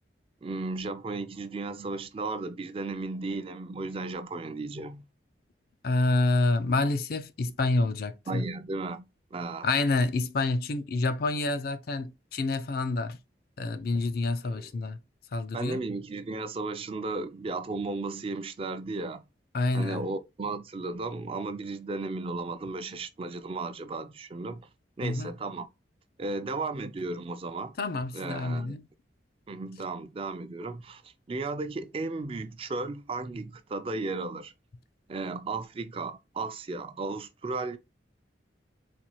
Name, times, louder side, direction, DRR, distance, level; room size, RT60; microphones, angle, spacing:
voice 1, 0.4-5.0 8.3-9.1 9.3-9.7 14.4-14.7 15.5-19.2 19.7-24.7 25.0-25.7 26.2-27.7 28.1-28.7 29.5-34.5 35.1-37.8, right 3 dB, 30° right, 0.4 m, -35 dB
voice 2, 5.8-8.4 9.6-13.2 13.6-15.0 15.3-15.8 19.5-20.0 25.0-25.3 27.8-28.9, left 2 dB, 55° left, 0.4 m, -28 dB
4.1 x 2.3 x 3.0 m
head